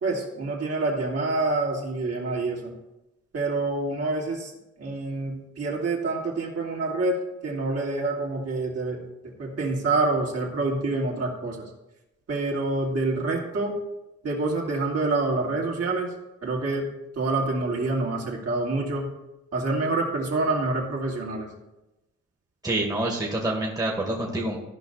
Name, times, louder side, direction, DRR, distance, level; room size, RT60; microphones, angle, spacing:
voice 1, 0.0-2.7 3.3-4.5 4.8-7.2 7.4-9.0 9.4-11.6 12.3-13.8 14.2-16.1 16.4-19.1 19.5-21.5, right 3 dB, 50° right, -2 dB, 2.9 m, -27 dB
voice 2, 22.6-24.6, right 1 dB, 10° right, -1 dB, 1.9 m, -27 dB
14.5 x 5.4 x 4.1 m, 0.94 s
cardioid pair, 90°, 30 cm